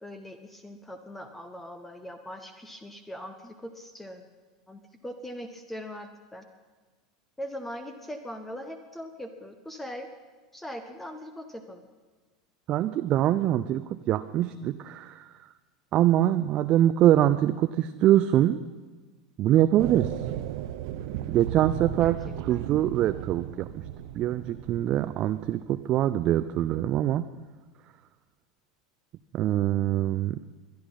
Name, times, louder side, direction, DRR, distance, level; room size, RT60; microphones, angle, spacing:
voice 1, 0.0-4.3 4.7-6.4 7.4-10.1 10.5-11.9 22.0-22.1 22.5-22.7, equal, 10° left, 7 dB, 1.2 m, -41 dB
voice 2, 12.7-15.3 15.9-18.6 19.4-20.1 21.3-23.8 24.1-27.3 29.3-30.4, right 12 dB, 40° right, 11 dB, 0.5 m, -24 dB
sound 1, 19.8-25.9, right 11 dB, 55° right, 0.9 m, -36 dB
22.5 x 10.5 x 5.5 m, 1.3 s
figure-of-eight pair, 80°, 3 cm